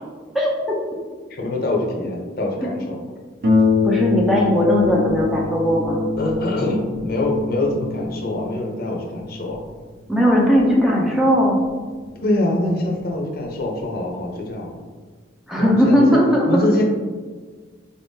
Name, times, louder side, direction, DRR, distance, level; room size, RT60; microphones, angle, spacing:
voice 1, 0.3-0.8 2.7-2.8 3.8-6.0 10.1-11.6 15.5-16.5, equal, ahead, -3 dB, 0.4 m, -17 dB
voice 2, 1.3-3.0 6.2-9.6 12.2-14.7 15.6-16.2 16.5-16.8, left 1 dB, 50° left, 0 dB, 0.6 m, -24 dB
Harp, 3.4-12.6 13.4-13.5 14.0-14.1, left 4 dB, 50° right, 0.6 m, -25 dB
3.9 x 3.6 x 2.6 m, 1.5 s
head